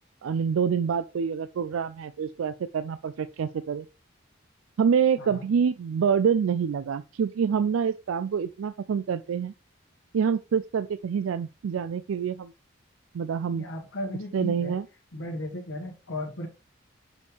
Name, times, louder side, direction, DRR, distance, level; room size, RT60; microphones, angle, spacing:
voice 1, 0.2-3.9 4.8-9.5 10.1-12.5 13.1-13.6 14.3-14.9, right 7 dB, 90° right, 0.4 m, -26 dB
voice 2, 13.5-14.8 15.1-16.5, left 1 dB, 85° left, 1.4 m, -35 dB
6.4 x 5.3 x 3.2 m
head